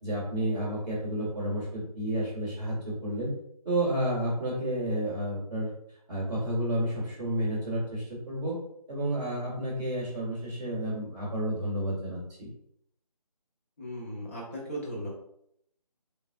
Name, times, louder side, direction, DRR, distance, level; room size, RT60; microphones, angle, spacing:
voice 1, 0.0-3.3 3.6-5.7 6.1-8.6 8.9-12.5, right 1 dB, 5° right, -11 dB, 0.8 m, -31 dB
voice 2, 13.8-15.1, equal, 20° left, -4 dB, 0.9 m, -37 dB
3.8 x 3.3 x 2.3 m, 0.71 s
figure-of-eight pair, 155°, 20 cm